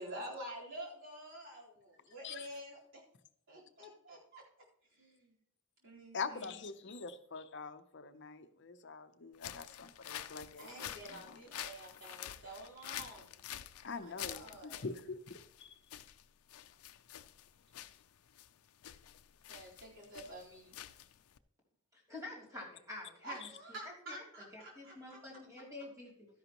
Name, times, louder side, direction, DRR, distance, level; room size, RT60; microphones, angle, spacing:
voice 1, 0.0-2.8 3.5-4.4 4.9-5.3 5.8-6.6 10.6-13.5 14.0-14.9 19.5-20.8 23.2-25.2, right 1 dB, 60° right, -5 dB, 4.1 m, -49 dB
voice 2, 6.1-10.7 11.1-11.4 13.8-15.7, left 4 dB, 55° left, 10 dB, 0.7 m, -44 dB
sound 1, 9.3-21.4, left 12 dB, 85° left, 0.5 m, -48 dB
voice 3, 21.9-23.5 24.1-24.2 24.5-26.3, left 2 dB, 15° right, -3 dB, 3.0 m, -48 dB
12.5 x 10.5 x 3.0 m, 0.72 s
head